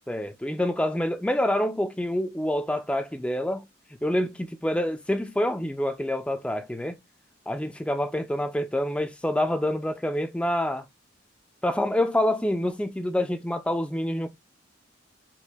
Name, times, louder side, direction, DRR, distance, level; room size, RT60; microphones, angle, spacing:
voice 1, 0.1-3.6 4.0-7.0 7.5-10.8 11.6-14.3, left 1 dB, 5° left, 0.3 m, -27 dB
4.4 x 2.5 x 2.3 m
head